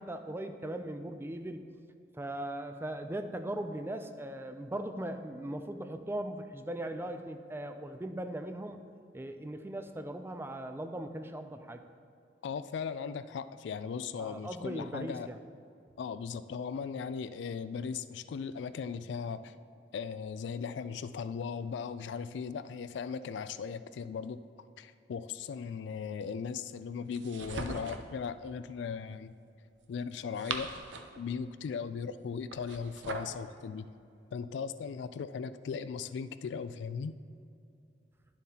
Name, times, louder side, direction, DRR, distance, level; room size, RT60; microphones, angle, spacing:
voice 1, 0.0-1.6 2.1-8.8 9.1-11.8 14.2-15.4, right 1 dB, 15° right, 7 dB, 0.3 m, -39 dB
voice 2, 12.4-15.3 16.0-19.5 19.9-24.4 24.8-29.3 29.9-30.7 31.2-33.9 34.3-37.1, left 6 dB, 70° left, 13 dB, 0.3 m, -38 dB
sound 1, 27.1-28.1 30.1-31.2 32.5-33.4, right 4 dB, 80° right, 0.6 m, -40 dB
10.5 x 7.2 x 2.8 m, 2.5 s
head